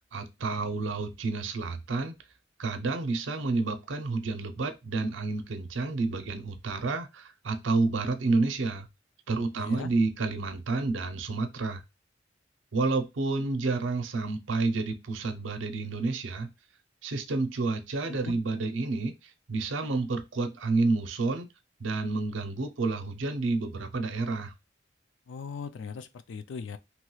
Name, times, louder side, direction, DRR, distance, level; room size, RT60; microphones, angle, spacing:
voice 1, 0.0-2.1 2.6-8.9 9.3-11.8 12.7-16.5 17.0-21.5 21.8-24.5, right 3 dB, 85° right, 0.6 m, -30 dB
voice 2, 9.6-9.9 18.0-18.4 25.3-26.8, left 5 dB, 70° left, 0.4 m, -39 dB
3.0 x 2.3 x 3.0 m
head